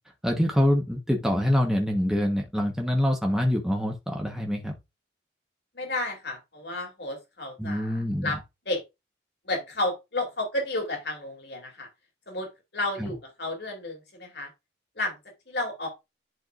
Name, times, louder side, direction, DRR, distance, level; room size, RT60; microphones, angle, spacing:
voice 1, 0.2-4.7 7.6-8.3 13.0-13.1, equal, 5° right, 1.1 m, -25 dB
voice 2, 5.7-8.4 8.7-8.8 9.4-11.9 12.3-14.5 15.0-15.2 15.5-15.9, left 2 dB, 70° left, 2.8 m, -32 dB
10.5 x 4.7 x 2.5 m
head